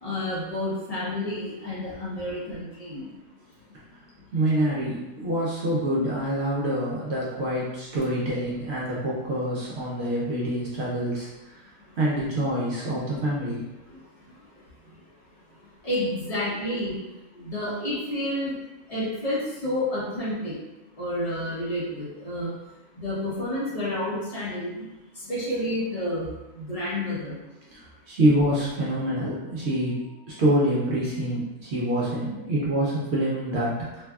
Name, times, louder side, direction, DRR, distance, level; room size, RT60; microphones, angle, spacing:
voice 1, 0.0-3.1 15.8-17.0 17.4-18.5 18.9-20.5 21.0-22.5 23.0-24.8 25.2-26.3 26.6-27.4, left 1 dB, 45° left, -7 dB, 0.5 m, -29 dB
voice 2, 4.3-11.6 12.0-13.6 27.7-34.0, right 1 dB, 65° right, -6 dB, 0.7 m, -26 dB
3.2 x 2.2 x 2.3 m, 1.0 s
omnidirectional pair, 1.5 m